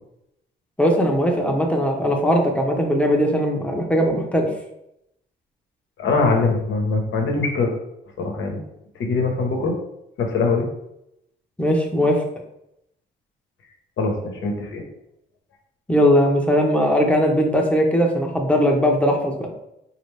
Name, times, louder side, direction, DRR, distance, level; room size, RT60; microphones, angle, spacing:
voice 1, 0.8-4.5 11.6-12.2 15.9-19.4, equal, 5° left, 1 dB, 0.8 m, -19 dB
voice 2, 6.0-7.7 8.2-8.6 9.0-9.8 10.2-10.7 14.0-14.8, left 3 dB, 75° left, 2 dB, 1.1 m, -22 dB
4.2 x 2.8 x 3.3 m, 0.82 s
cardioid pair, 90°, 20 cm